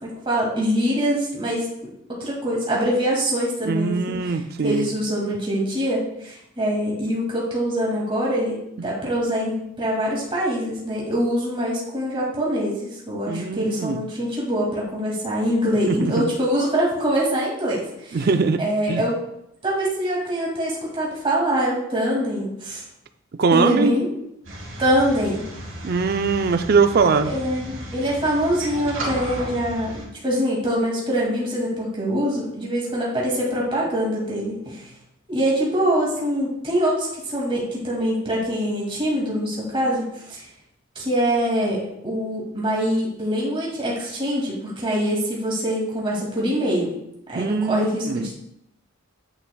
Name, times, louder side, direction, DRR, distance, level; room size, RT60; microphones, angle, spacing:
voice 1, 0.0-1.7 2.1-3.9 4.6-18.2 18.6-19.1 19.6-22.8 23.5-24.1 24.8-25.4 27.2-34.8 35.3-40.4 41.0-46.9 47.3-48.3, equal, 25° right, -5 dB, 2.2 m, -24 dB
voice 2, 3.6-4.9 8.8-8.9 13.3-14.0 15.9-16.3 18.1-18.6 18.9-19.0 23.3-23.9 25.8-27.3 47.3-48.3, right 4 dB, 45° right, 9 dB, 0.4 m, -21 dB
sound 1, 24.4-30.1, right 1 dB, 65° right, 2.7 m, -34 dB
9.6 x 5.8 x 2.3 m, 0.78 s
head